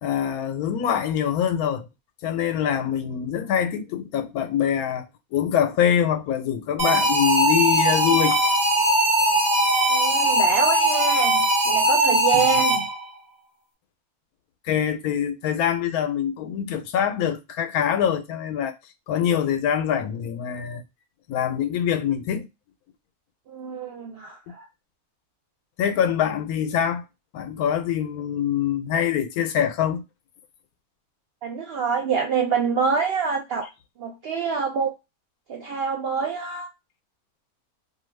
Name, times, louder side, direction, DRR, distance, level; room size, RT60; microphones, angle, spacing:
voice 1, 0.0-1.9 2.2-5.1 5.3-8.4 12.3-12.6 14.6-18.7 19.1-20.8 21.3-22.5 25.8-27.0 27.3-30.0, left 9 dB, 80° left, 1.1 m, -24 dB
sound 1, 6.8-13.1, right 1 dB, 35° right, 1.1 m, -20 dB
voice 2, 9.9-12.9 23.5-24.7 31.4-33.7 34.0-34.9 35.5-36.7, right 6 dB, 70° right, 0.6 m, -26 dB
2.7 x 2.3 x 3.1 m
omnidirectional pair, 1.5 m